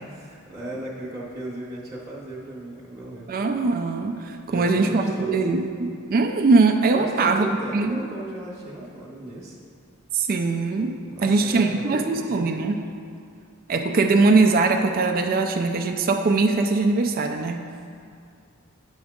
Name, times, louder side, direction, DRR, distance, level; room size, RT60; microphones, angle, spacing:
voice 1, 0.0-3.4 4.5-5.6 7.0-9.6 11.1-12.5 17.7-17.9, right 1 dB, 15° right, -8 dB, 0.9 m, -37 dB
voice 2, 3.3-7.5 7.7-8.0 10.1-12.8 13.7-17.6, right 3 dB, 45° right, 4 dB, 0.4 m, -21 dB
9.6 x 6.1 x 3.6 m, 2.4 s
head